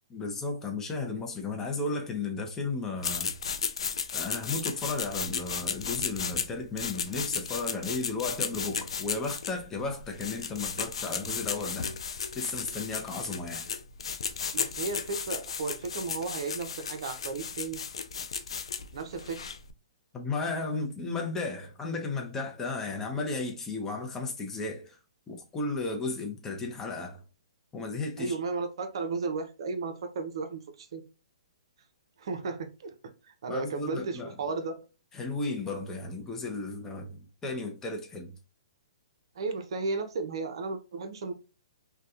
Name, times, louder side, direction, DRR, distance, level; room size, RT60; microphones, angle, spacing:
voice 1, 0.1-3.3 4.1-11.9 12.3-13.7 20.1-25.0 25.3-27.2 27.7-28.4 33.5-34.3 35.1-38.3, left 3 dB, 15° left, 0.5 m, -34 dB
sound 1, 3.0-19.7, left 6 dB, 75° left, 0.3 m, -35 dB
voice 2, 14.5-17.8 18.9-19.5 28.2-31.0 32.2-32.9 33.2-34.8 39.4-41.3, right 4 dB, 65° right, 0.5 m, -34 dB
2.7 x 2.1 x 2.3 m
hypercardioid pair, 140°, 3 cm